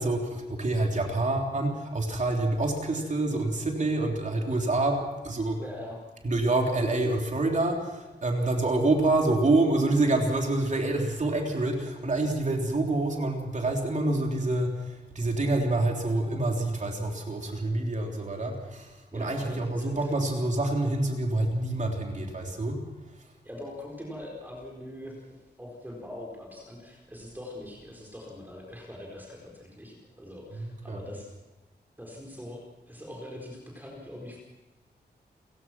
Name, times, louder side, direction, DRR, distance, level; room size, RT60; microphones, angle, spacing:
voice 1, 0.0-5.6 6.2-22.8 23.1-23.3 30.5-31.0, right 2 dB, 45° right, 1 dB, 3.5 m, -27 dB
voice 2, 5.6-6.0 19.1-20.1 23.4-31.3 32.0-34.4, left 1 dB, 10° right, -1 dB, 4.3 m, -42 dB
29.5 x 16.0 x 6.1 m, 1.2 s
wide cardioid pair, 150°, 18 cm